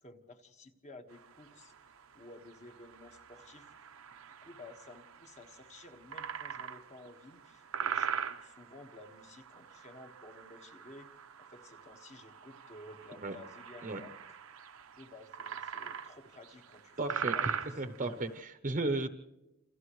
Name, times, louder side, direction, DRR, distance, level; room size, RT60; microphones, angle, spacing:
voice 1, 0.0-3.7 4.4-11.1 11.4-14.4 14.9-17.8, left 2 dB, 35° left, 5 dB, 1.6 m, -54 dB
sound 1, 1.1-18.4, right 7 dB, 80° right, 0.9 m, -42 dB
voice 2, 17.0-19.1, right 2 dB, 40° right, 8 dB, 0.9 m, -34 dB
29.0 x 28.0 x 3.2 m, 0.96 s
head